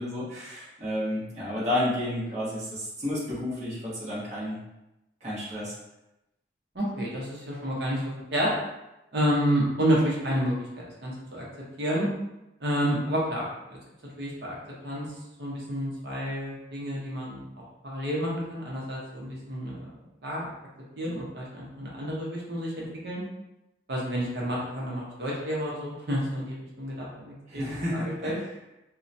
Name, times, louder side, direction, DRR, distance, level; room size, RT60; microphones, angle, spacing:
voice 1, 0.0-4.6 5.2-5.7 27.5-28.3, left 1 dB, 40° right, -8 dB, 0.9 m, -31 dB
voice 2, 6.7-8.5 9.1-10.5 11.0-11.4 11.8-12.1 12.6-13.8 14.2-14.6 14.8-15.1 15.4-17.4 17.8-19.9 20.2-20.5 21.0-23.2 23.9-28.4, equal, 60° right, -4 dB, 0.8 m, -29 dB
2.7 x 2.1 x 2.6 m, 0.92 s
head